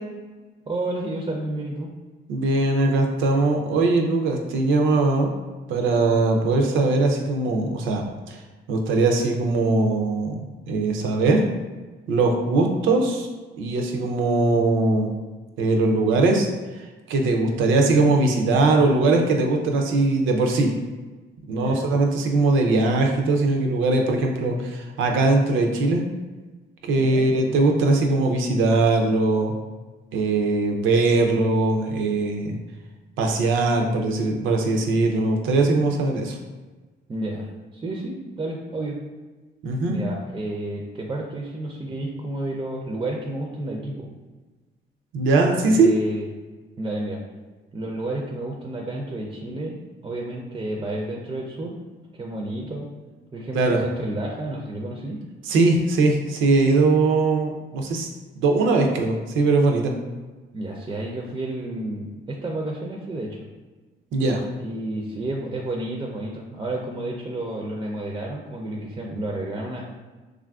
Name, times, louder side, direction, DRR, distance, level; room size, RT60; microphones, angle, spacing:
voice 1, 0.7-1.9 12.6-12.7 21.5-21.9 27.0-27.2 37.1-39.0 39.9-44.1 45.6-46.3 46.8-47.2 47.7-51.8 52.1-52.9 53.3-55.2 60.5-63.4 64.6-69.9, right 1 dB, 25° right, -1 dB, 0.4 m, -31 dB
voice 2, 2.3-5.3 5.7-8.4 8.7-11.4 12.1-13.3 13.6-15.1 15.6-20.7 21.5-26.0 26.8-29.5 30.1-32.6 33.2-36.4 39.6-40.0 45.1-45.9 53.5-53.8 55.4-58.1 58.4-59.9 64.1-64.4, right 3 dB, 85° right, 2 dB, 0.5 m, -21 dB
3.2 x 2.4 x 2.3 m, 1.3 s
cardioid pair, 90°, 20 cm